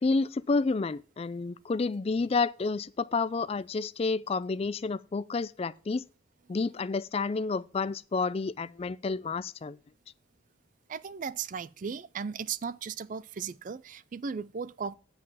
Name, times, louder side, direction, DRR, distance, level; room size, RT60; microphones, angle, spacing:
voice 1, 0.0-6.1 6.5-9.8, left 4 dB, 30° left, 0.3 m, -30 dB
voice 2, 10.9-14.9, right 6 dB, 40° right, 0.4 m, -36 dB
7.6 x 6.0 x 6.9 m
head